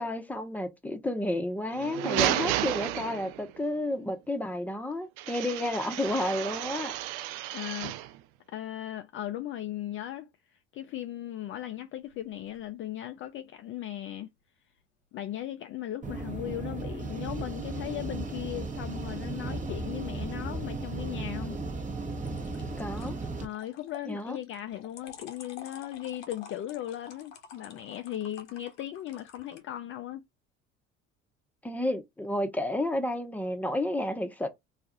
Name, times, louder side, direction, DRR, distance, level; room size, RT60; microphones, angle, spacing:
voice 1, 0.0-6.9 22.8-23.2 24.1-24.4 31.6-34.5, left 1 dB, 5° left, 0.8 m, -31 dB
sound 1, 1.7-3.6 5.2-8.2, right 13 dB, 65° right, 0.5 m, -32 dB
voice 2, 7.5-8.0 8.5-14.3 15.1-21.6 23.4-30.3, left 12 dB, 40° left, 0.4 m, -37 dB
sound 2, 12.0-12.7 22.2-29.6, left 6 dB, 80° left, 0.9 m, -50 dB
sound 3, 16.0-23.5, right 3 dB, 20° right, 0.9 m, -35 dB
2.4 x 2.4 x 4.0 m
hypercardioid pair, 65°, 34 cm